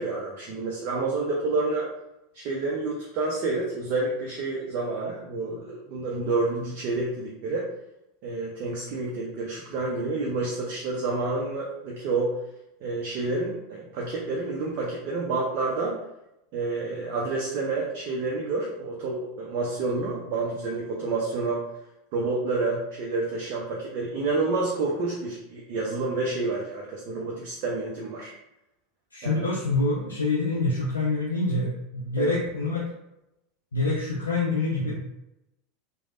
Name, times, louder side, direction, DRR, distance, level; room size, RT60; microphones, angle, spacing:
voice 1, 0.0-1.9 2.3-7.7 8.2-12.4 12.8-16.0 16.5-21.6 22.1-28.3 29.2-29.4 32.2-32.4, right 3 dB, 45° right, -3 dB, 0.5 m, -29 dB
voice 2, 29.1-32.8 33.7-35.0, left 2 dB, 75° left, -4 dB, 0.4 m, -26 dB
3.1 x 2.0 x 2.5 m, 0.88 s
figure-of-eight pair, 80°, 0 cm